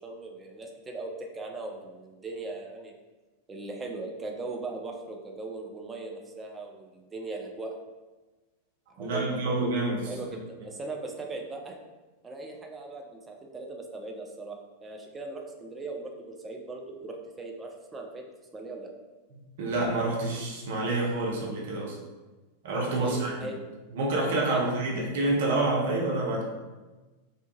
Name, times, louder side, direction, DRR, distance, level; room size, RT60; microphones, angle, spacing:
voice 1, 0.0-2.9 3.5-7.7 8.9-9.4 10.1-11.8 12.2-18.2 18.5-18.9 23.0-23.6 24.5-24.6, right 3 dB, 15° right, 1 dB, 0.4 m, -39 dB
voice 2, 9.0-10.1 19.6-22.0 22.6-23.3 23.9-26.4, right 2 dB, 55° right, -3 dB, 0.6 m, -27 dB
2.7 x 2.2 x 2.8 m, 1.2 s
figure-of-eight pair, 90°, 0 cm